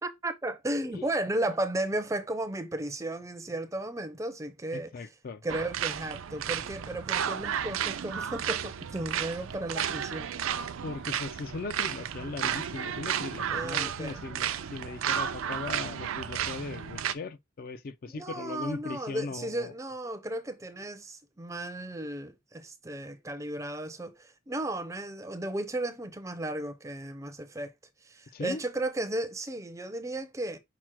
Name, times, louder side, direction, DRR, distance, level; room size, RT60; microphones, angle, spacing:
voice 1, 0.0-4.9 5.4-10.3 13.5-14.2 18.1-27.7 28.0-30.6, right 1 dB, 15° right, 0.5 m, -34 dB
voice 2, 4.7-5.4 10.8-19.7 28.3-28.6, left 4 dB, 45° left, 0.4 m, -39 dB
sound 1, 5.5-17.1, right 8 dB, 80° right, 0.4 m, -33 dB
6.0 x 2.0 x 4.4 m
head